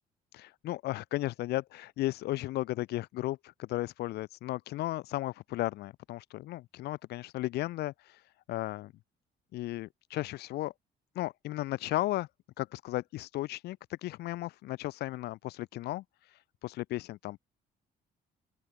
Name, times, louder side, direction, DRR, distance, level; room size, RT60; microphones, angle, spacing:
voice 1, 0.3-8.9 9.5-10.7 11.1-12.3 12.6-17.4, left 16 dB, 75° left, 0.9 m, -35 dB
open air
cardioid pair, 110°, 17 cm